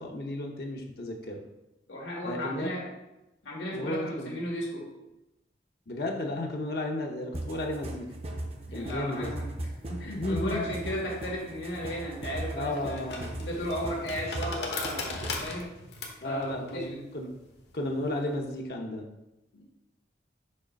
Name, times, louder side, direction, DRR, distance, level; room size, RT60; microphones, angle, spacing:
voice 1, 0.0-1.4 2.2-2.7 3.7-4.3 5.9-8.1 8.7-9.3 10.1-10.7 12.5-13.3 16.2-17.3 17.7-19.1, left 1 dB, 55° left, 1 dB, 0.7 m, -33 dB
voice 2, 1.9-2.9 3.4-4.9 8.7-13.0 13.4-15.7 16.2-17.0 19.5-19.6, equal, 90° left, -2 dB, 2.0 m, -35 dB
sound 1, 7.3-15.5, right 1 dB, 35° right, 0.6 m, -38 dB
sound 2, 11.9-18.5, left 3 dB, 70° left, 1.1 m, -40 dB
6.4 x 3.1 x 5.2 m, 0.94 s
head